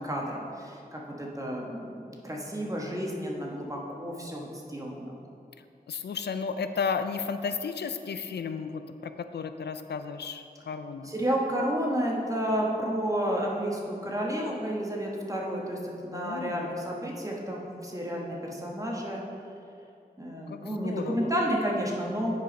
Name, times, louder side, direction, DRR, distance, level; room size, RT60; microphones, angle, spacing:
voice 1, 0.0-5.1 11.0-19.2 20.2-22.3, equal, 20° right, -2 dB, 1.3 m, -31 dB
voice 2, 5.9-11.1 16.1-16.7 20.5-21.3, left 5 dB, 90° left, 9 dB, 0.4 m, -33 dB
7.2 x 4.8 x 5.3 m, 2.5 s
wide cardioid pair, 50°, 17 cm